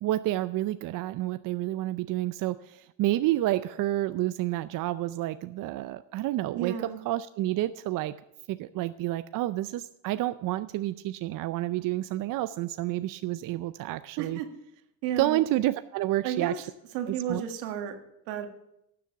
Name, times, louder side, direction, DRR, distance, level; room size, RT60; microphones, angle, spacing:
voice 1, 0.0-8.1 8.5-14.4 15.2-16.7 17.1-17.4, right 15 dB, 55° right, 12 dB, 0.5 m, -29 dB
voice 2, 6.5-7.0 14.2-14.5 15.0-15.4 16.2-16.6 16.9-18.0 18.3-18.5, right 9 dB, 90° right, 5 dB, 1.7 m, -32 dB
12.5 x 7.6 x 6.8 m, 0.81 s
supercardioid pair, 90°, 38 cm